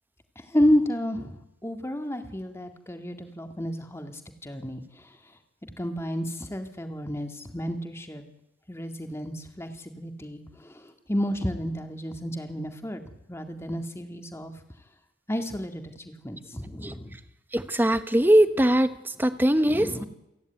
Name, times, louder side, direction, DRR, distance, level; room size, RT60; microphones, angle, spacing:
voice 1, 0.4-5.1 5.8-8.2 8.7-13.0 13.3-14.5 15.3-17.2 19.6-20.1, equal, 15° left, 6 dB, 2.1 m, -31 dB
voice 2, 17.5-18.9 19.2-20.0, right 1 dB, 10° right, 11 dB, 1.0 m, -21 dB
28.0 x 11.0 x 9.2 m, 0.89 s
head